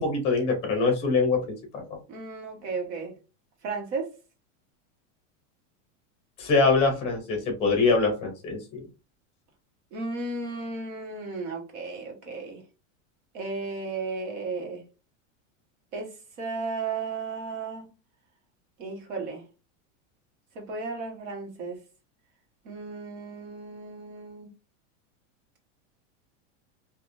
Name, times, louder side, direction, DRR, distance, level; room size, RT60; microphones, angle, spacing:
voice 1, 0.0-1.8 6.4-8.6, left 4 dB, 15° left, 0.9 m, -24 dB
voice 2, 2.1-3.1 3.6-4.1 9.9-12.6 13.3-14.8 15.9-16.1 16.4-17.9 18.8-19.4 20.5-21.8 22.6-24.5, right 4 dB, 60° right, 1.4 m, -34 dB
3.4 x 2.6 x 2.6 m
supercardioid pair, 180°, 39 cm